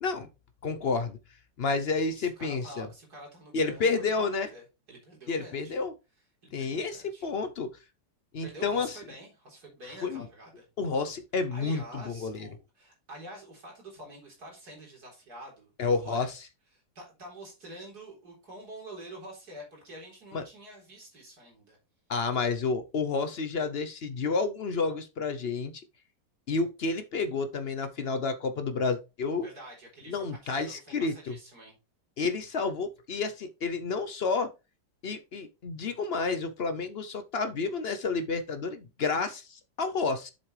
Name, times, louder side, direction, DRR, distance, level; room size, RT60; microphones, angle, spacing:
voice 1, 0.6-1.2 1.6-2.9 3.5-4.5 5.3-5.9 6.5-7.7 8.3-9.0 10.0-10.3 10.8-12.5 15.8-16.3 20.3-20.4 22.1-25.7 26.5-29.5 30.1-31.3 32.2-34.5 35.0-40.3, left 4 dB, 65° left, 0.6 m, -30 dB
voice 2, 2.1-5.7 6.4-7.3 8.4-10.7 11.5-16.3 16.7-21.8 29.4-31.8, right 1 dB, 55° right, 4.4 m, -47 dB
7.4 x 7.3 x 3.2 m
omnidirectional pair, 2.0 m